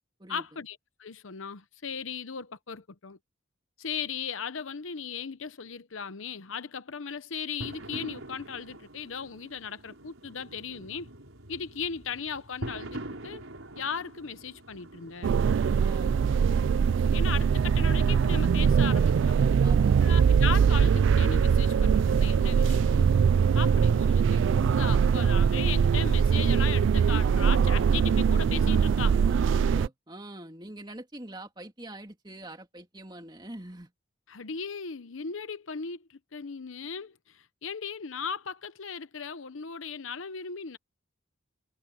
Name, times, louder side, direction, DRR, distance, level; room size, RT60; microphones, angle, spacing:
voice 1, 0.3-3.2 3.8-11.1 11.5-13.5 13.8-15.4 17.0-19.4 20.0-23.1 23.5-29.2 34.3-40.8, left 6 dB, 75° left, 0.9 m, -37 dB
sound 1, 7.6-25.6, right 1 dB, 80° right, 5.1 m, -47 dB
sound 2, 15.2-29.9, right 6 dB, 65° right, 0.3 m, -22 dB
voice 2, 15.8-16.2 19.6-20.0 29.2-33.9, right 1 dB, 20° right, 3.0 m, -44 dB
head